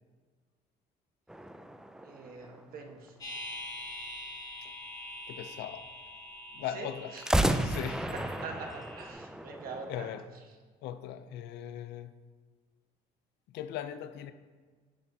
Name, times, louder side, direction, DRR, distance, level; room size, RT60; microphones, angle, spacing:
sound 1, 1.3-3.1 7.1-10.3, right 1 dB, 5° right, 0.4 m, -33 dB
voice 1, 2.0-3.1 6.7-7.2 8.1-10.1, right 4 dB, 60° right, 3 dB, 1.3 m, -44 dB
sound 2, 3.2-9.1, left 1 dB, 25° left, 2.4 m, -44 dB
voice 2, 5.3-5.9 6.5-7.1 7.6-8.1 9.9-10.2 10.8-12.2 13.5-14.3, left 10 dB, 80° left, 11 dB, 0.5 m, -39 dB
10.0 x 7.3 x 2.8 m, 1.5 s
cardioid pair, 110°, 17 cm